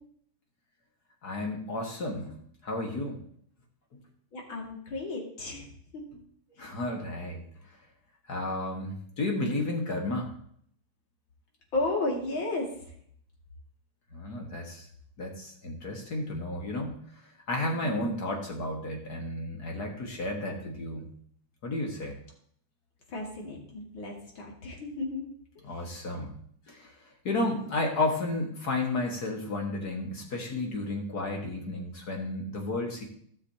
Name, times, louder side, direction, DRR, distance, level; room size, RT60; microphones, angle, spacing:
voice 1, 1.2-2.4 2.6-3.2 3.9-4.0 6.1-6.2 6.6-7.4 8.3-10.3 14.1-14.9 15.2-16.9 17.5-21.0 21.6-22.2 25.6-26.3 26.7-26.9 27.2-33.1, left 2 dB, 50° left, 1 dB, 2.0 m, -32 dB
voice 2, 4.3-5.7 11.7-12.7 17.7-18.0 23.1-25.3, left 2 dB, 65° left, -1 dB, 2.9 m, -33 dB
16.0 x 6.8 x 2.8 m, 0.63 s
omnidirectional pair, 2.3 m